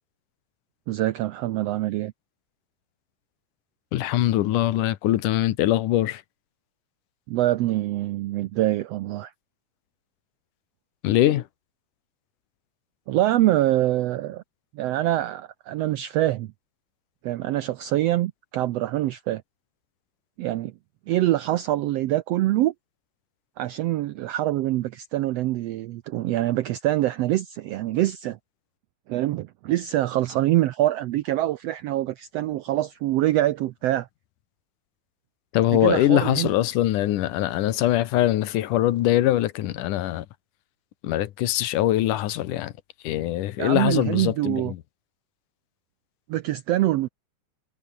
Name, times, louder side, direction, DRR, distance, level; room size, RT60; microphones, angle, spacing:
voice 1, 0.9-2.1 7.3-9.3 13.1-14.4 14.7-16.5 17.2-19.4 20.4-20.7 21.1-22.7 23.6-28.4 29.1-34.1 35.7-36.5 43.6-44.7 46.3-47.1, right 15 dB, 80° right, 1.4 m, -24 dB
voice 2, 3.9-6.2 11.0-11.5 35.5-40.3 41.0-42.7 43.0-44.8, left 14 dB, 85° left, 2.6 m, -22 dB
omnidirectional pair, 3.6 m